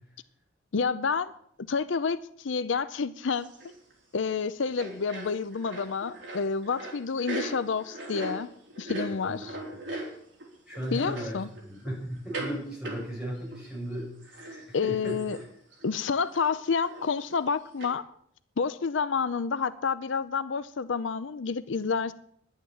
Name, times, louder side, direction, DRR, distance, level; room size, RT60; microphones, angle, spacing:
voice 1, 0.7-1.3 1.7-3.5 4.1-8.5 8.8-9.6 10.9-11.5 14.7-15.4 15.8-18.0 18.6-22.1, left 5 dB, 75° left, 14 dB, 0.6 m, -29 dB
sound 1, 3.3-3.9 4.2-4.4 4.7-10.5 10.7-11.9 12.3-12.6 12.8-13.7 13.9-14.0 14.2-15.5 15.7-15.9 16.3-17.4 17.8-17.9, right 1 dB, 65° right, 4.1 m, -39 dB
voice 2, 9.1-9.5 10.7-15.2, equal, 5° right, -5 dB, 6.7 m, -36 dB
11.0 x 8.8 x 8.9 m, 0.67 s
head